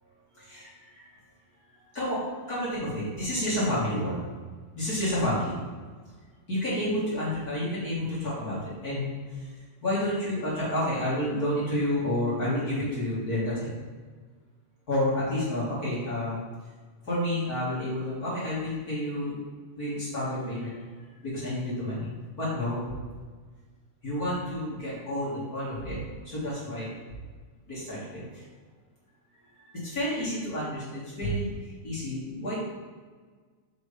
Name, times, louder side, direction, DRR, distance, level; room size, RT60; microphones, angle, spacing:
voice 1, 1.9-2.2 2.5-4.2 4.8-5.5 6.5-9.4 9.8-13.7 14.9-16.4 17.0-19.4 19.8-20.7 21.2-22.1 22.4-22.8 24.0-26.0 26.2-26.9 27.7-28.4 29.5-32.5, left 1 dB, 35° left, -9 dB, 1.8 m, -30 dB
7.7 x 5.5 x 3.3 m, 1.5 s
omnidirectional pair, 3.9 m